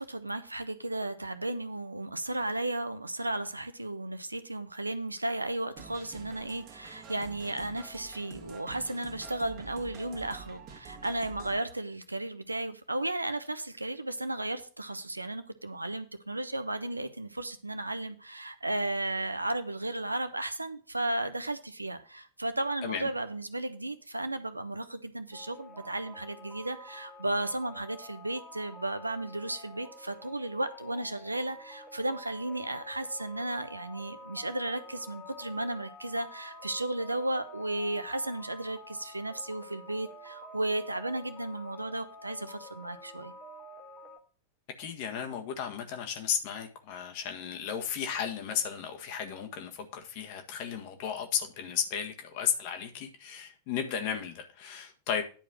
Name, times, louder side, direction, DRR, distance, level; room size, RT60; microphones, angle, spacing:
voice 1, 0.0-43.3, right 2 dB, 85° right, 0.9 m, -34 dB
sound 1, 5.8-11.6, right 6 dB, 35° right, 1.8 m, -48 dB
sound 2, 25.3-44.2, left 1 dB, 5° left, 1.6 m, -49 dB
voice 2, 44.8-55.2, left 8 dB, 45° left, 1.6 m, -34 dB
10.5 x 4.8 x 5.8 m
figure-of-eight pair, 90°, 0 cm